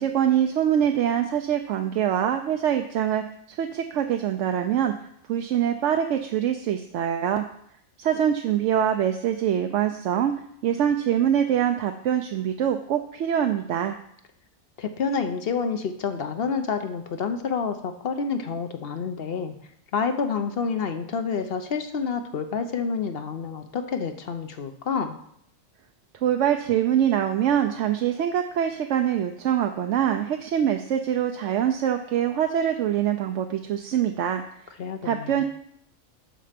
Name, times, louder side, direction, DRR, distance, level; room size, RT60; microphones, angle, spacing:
voice 1, 0.0-4.9 5.3-7.4 8.0-10.3 10.6-14.0 26.2-34.7 35.0-35.4, right 9 dB, 70° right, 5 dB, 0.9 m, -24 dB
voice 2, 14.8-19.6 19.9-25.2 34.8-35.4, left 5 dB, 55° left, 8 dB, 0.9 m, -28 dB
12.5 x 4.4 x 5.1 m, 0.70 s
omnidirectional pair, 1.4 m